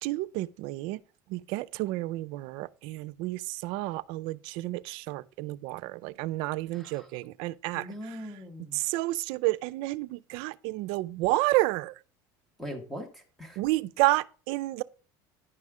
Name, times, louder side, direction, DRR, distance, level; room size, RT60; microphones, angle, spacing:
voice 1, 0.0-1.0 1.3-8.2 8.7-12.0 13.6-14.8, right 19 dB, 70° right, 0.4 m, -30 dB
voice 2, 6.7-7.1 7.7-8.8 12.6-13.6, equal, ahead, 1.4 m, -41 dB
10.0 x 5.4 x 4.8 m
cardioid pair, 140°, 10 cm